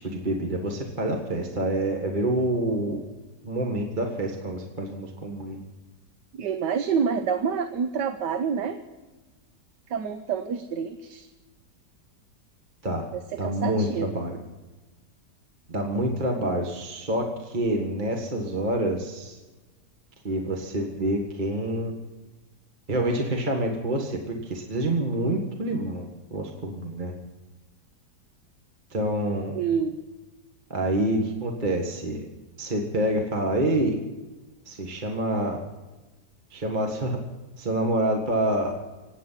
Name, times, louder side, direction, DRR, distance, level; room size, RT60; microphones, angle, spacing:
voice 1, 0.0-3.0 3.4-5.6 12.8-13.1 13.4-14.4 15.7-19.4 20.2-21.9 22.9-27.1 28.9-29.6 30.7-32.2 32.6-34.0 34.7-35.6 36.5-37.2 37.6-38.7, right 1 dB, 30° right, 1 dB, 1.8 m, -27 dB
voice 2, 6.3-8.8 9.9-11.3 13.1-14.1 29.5-30.0, right 6 dB, 80° right, 8 dB, 1.5 m, -27 dB
26.0 x 9.2 x 5.7 m, 1.2 s
omnidirectional pair, 1.9 m